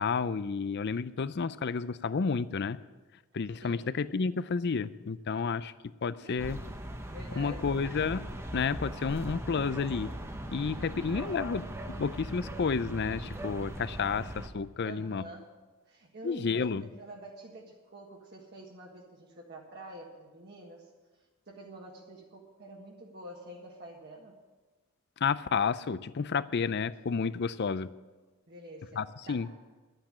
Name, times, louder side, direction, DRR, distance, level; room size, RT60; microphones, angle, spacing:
voice 1, 0.0-2.8 3.3-5.7 6.0-6.6 7.4-8.2 8.5-10.1 10.5-11.6 12.0-15.2 16.2-16.8 25.2-27.9 28.9-29.5, left 5 dB, 50° left, 16 dB, 0.5 m, -31 dB
voice 2, 3.6-4.0 6.2-6.5 7.1-7.8 10.6-11.4 11.7-12.1 14.8-15.5 15.8-24.4 26.7-26.8 28.5-29.5, right 1 dB, 50° right, -1 dB, 1.5 m, -48 dB
sound 1, 6.4-14.5, right 1 dB, 10° right, 0.9 m, -40 dB
11.5 x 9.0 x 8.6 m, 1.2 s
head